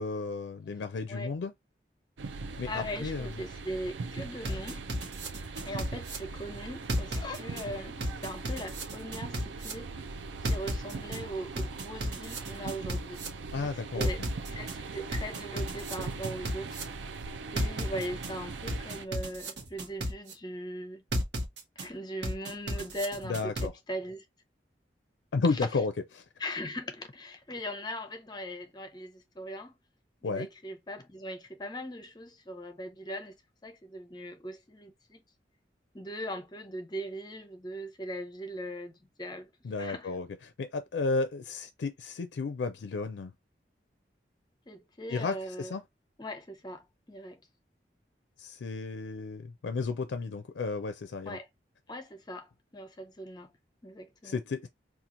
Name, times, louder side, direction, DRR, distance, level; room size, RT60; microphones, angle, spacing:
voice 1, 0.0-1.5 2.6-3.3 13.5-14.1 23.2-23.7 25.3-26.2 30.2-30.5 39.6-40.3 40.6-43.3 45.1-45.8 48.4-51.4 54.2-54.7, left 4 dB, 80° left, 0.4 m, -33 dB
sound 1, 2.2-19.0, right 4 dB, 85° right, 0.4 m, -41 dB
voice 2, 2.7-4.9 5.6-10.1 10.4-13.2 13.5-14.2 14.5-16.8 17.5-21.0 21.8-24.3 25.5-25.7 26.4-29.8 30.2-33.4 33.6-35.2 35.9-39.5 39.8-40.2 44.7-45.7 46.2-47.4 51.3-51.5 51.9-53.5 53.8-54.4, equal, 25° left, 0.6 m, -40 dB
sound 2, 4.4-6.2 6.9-7.6 8.0-9.7 10.4-11.2 11.6-13.3 14.0-14.7 15.1-16.8 17.6-18.3 18.7-20.3 21.1-21.9 22.2-23.7, equal, 70° right, 1.0 m, -33 dB
2.9 x 2.4 x 3.6 m
head